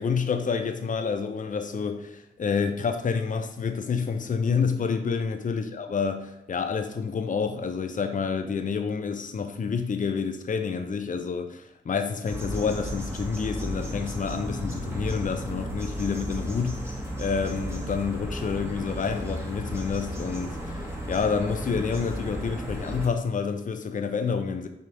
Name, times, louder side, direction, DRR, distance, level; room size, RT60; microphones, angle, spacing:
voice 1, 0.0-24.7, left 5 dB, 45° left, 7 dB, 0.5 m, -28 dB
sound 1, 12.3-23.1, equal, 15° right, 1.3 m, -34 dB
5.1 x 2.7 x 3.4 m, 0.82 s
cardioid pair, 45°, 19 cm